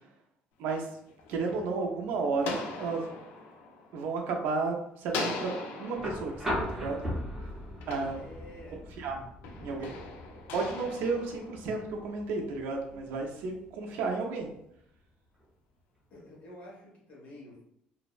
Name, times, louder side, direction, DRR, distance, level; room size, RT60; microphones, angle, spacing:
sound 1, 0.9-4.6 5.1-8.8 9.4-12.1, left 3 dB, 80° left, 0.4 m, -41 dB
voice 1, 1.3-3.1 3.9-5.5 5.8-7.1 7.9-8.2 9.0-9.3 9.6-9.9 10.5-14.5, right 4 dB, 80° right, 2 dB, 0.5 m, -32 dB
sound 2, 5.9-14.0 15.4-15.5, equal, 10° right, 0.6 m, -39 dB
voice 2, 8.1-8.8 9.5-10.2 10.7-10.9 16.1-17.6, left 1 dB, 55° left, -4 dB, 1.0 m, -50 dB
2.5 x 2.0 x 2.4 m, 0.75 s
cardioid pair, 160°, 3 cm